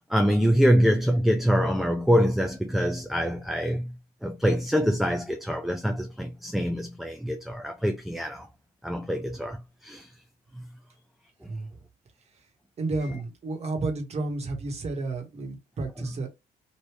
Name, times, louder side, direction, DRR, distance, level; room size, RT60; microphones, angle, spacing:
voice 1, 0.1-8.5 8.8-10.1 10.5-10.7 16.0-16.1, equal, ahead, 0.3 m, -25 dB
voice 2, 12.8-16.3, right 3 dB, 40° right, 1.4 m, -31 dB
3.1 x 2.6 x 3.3 m
cardioid pair, 110°, 17 cm